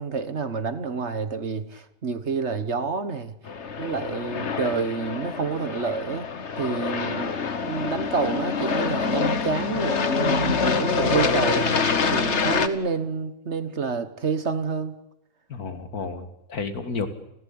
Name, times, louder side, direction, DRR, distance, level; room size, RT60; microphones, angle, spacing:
voice 1, 0.0-3.3 3.8-6.3 6.6-7.3 7.6-11.7 12.1-15.0, right 5 dB, 50° right, 1.5 m, -28 dB
Aircraft, 3.5-12.7, left 5 dB, 50° left, 1.6 m, -26 dB
voice 2, 15.5-17.1, left 4 dB, 75° left, 2.5 m, -31 dB
30.0 x 16.0 x 8.6 m
omnidirectional pair, 1.6 m